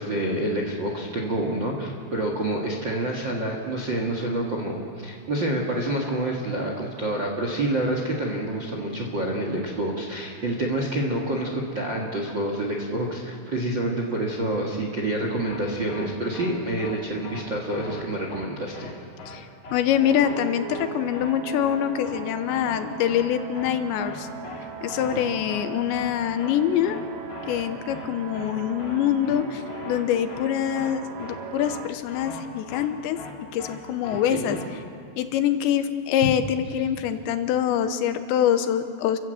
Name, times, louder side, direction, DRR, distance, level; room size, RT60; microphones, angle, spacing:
voice 1, 0.0-18.9 25.1-25.4 34.2-34.6, right 1 dB, 50° right, 1 dB, 1.4 m, -28 dB
sound 1, 15.4-15.6 15.9-16.1 16.3-16.5 16.8-17.0 17.2-17.4 17.7-18.0 18.3-18.5 18.7-18.9 19.2-19.4 19.6-19.8 20.1-20.4 20.7-20.9 21.1-21.3 21.6-21.8 22.0-22.2 22.5-22.8 23.1-23.3 23.6-23.7 24.0-24.2 24.4-24.6 24.9-25.2 25.5-25.7 25.9-26.1 26.4-26.6 26.8-27.0 27.3-27.6 27.9-28.1 28.3-28.5 28.8-29.0 29.2-29.4 29.7-30.0 30.3-30.5 30.7-30.9 31.2-31.4 31.6-31.8 32.1-32.4 32.7-32.9 33.2-33.3 33.6-33.8 34.0-34.2 34.5-34.7, left 3 dB, 50° left, 4.2 m, -40 dB
voice 2, 19.3-24.3 24.8-27.0 27.5-33.2 33.5-34.6 35.2-39.2, left 10 dB, 85° left, 9 dB, 3.2 m, -25 dB
sound 2, 20.0-31.9, right 6 dB, 90° right, 1.5 m, -39 dB
29.5 x 15.5 x 7.9 m, 2.4 s
omnidirectional pair, 5.1 m